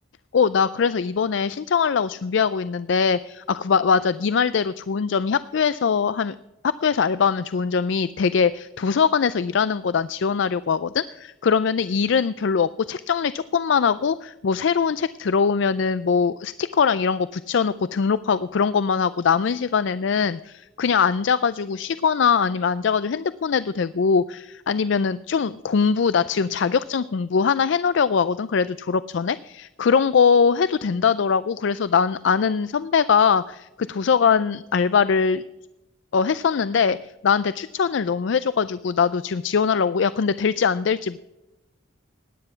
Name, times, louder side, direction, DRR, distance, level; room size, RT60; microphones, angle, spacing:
voice 1, 0.3-6.4 6.6-35.4 36.1-41.2, left 6 dB, 65° left, 15 dB, 0.4 m, -22 dB
17.0 x 9.8 x 5.7 m, 0.99 s
head